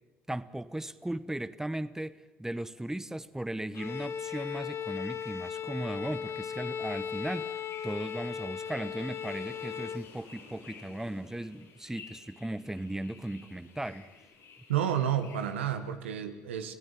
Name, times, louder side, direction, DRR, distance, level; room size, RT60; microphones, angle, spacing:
voice 1, 0.3-14.1, right 1 dB, 10° right, 14 dB, 1.3 m, -37 dB
Bowed string instrument, 3.7-10.1, left 7 dB, 45° left, 0.9 m, -37 dB
sound 1, 6.9-15.8, left 6 dB, 65° left, 4.0 m, -55 dB
sound 2, 8.8-15.6, left 4 dB, 85° left, 6.2 m, -58 dB
voice 2, 14.7-16.7, right 9 dB, 85° right, 8 dB, 1.7 m, -30 dB
28.5 x 17.0 x 9.2 m, 1.1 s
hypercardioid pair, 55°, 6 cm